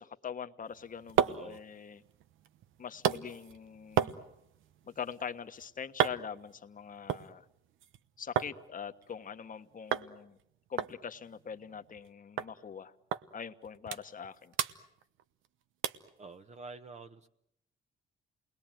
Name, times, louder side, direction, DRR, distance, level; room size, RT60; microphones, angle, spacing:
voice 1, 0.0-2.0 2.8-4.1 4.8-7.5 8.2-10.4 10.7-12.9 13.3-14.5, left 7 dB, 40° left, 9 dB, 1.4 m, -43 dB
sound 1, 0.7-8.6 8.9-9.5 9.9-10.1 10.4-10.5 10.8-12.1 12.4-12.5 13.1-13.2 13.6-14.3 14.5-15.5 15.8-16.1 16.6-16.7, right 10 dB, 80° right, 1.0 m, -35 dB
voice 2, 1.3-1.6 16.2-17.3, right 4 dB, 35° right, 7 dB, 1.1 m, -48 dB
28.5 x 21.0 x 9.0 m, 0.80 s
cardioid pair, 90°, 20 cm